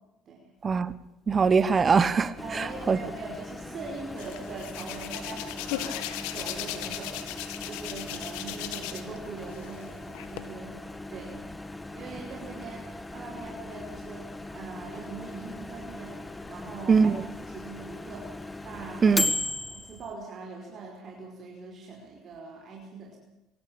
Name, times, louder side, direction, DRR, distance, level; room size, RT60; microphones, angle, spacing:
voice 1, 1.3-2.3 2.9-3.0 16.9-17.1 19.0-19.3, right 5 dB, 30° right, 1.1 m, -21 dB
Microwave oven, 2.4-20.1, left 2 dB, 15° left, 1.6 m, -38 dB
voice 2, 2.4-7.3 7.6-10.8 11.1-11.4 11.9-17.1 17.4-18.3 18.6-19.2 19.5-23.2, right 4 dB, 50° right, 4.7 m, -42 dB
Hands, 4.2-9.2 9.5-10.4, left 12 dB, 85° left, 2.0 m, -37 dB
24.0 x 14.0 x 8.7 m
supercardioid pair, 90°, 0 cm